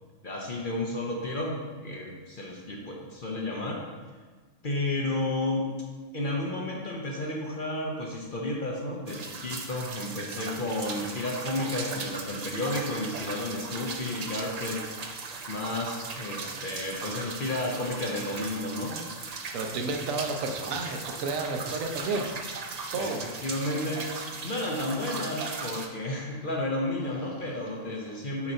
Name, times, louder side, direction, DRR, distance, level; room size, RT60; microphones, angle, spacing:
voice 1, 0.2-3.8 4.6-5.7 6.1-14.9 15.5-19.0 19.8-19.9 22.9-23.1 23.4-24.1 24.4-28.5, left 1 dB, 45° left, -2 dB, 0.8 m, -32 dB
sound 1, 9.1-25.9, right 4 dB, 70° right, 0.3 m, -38 dB
voice 2, 19.5-22.3 22.9-23.2 27.1-27.5, right 3 dB, 85° right, 4 dB, 1.1 m, -32 dB
7.0 x 2.9 x 5.2 m, 1.4 s
omnidirectional pair, 1.4 m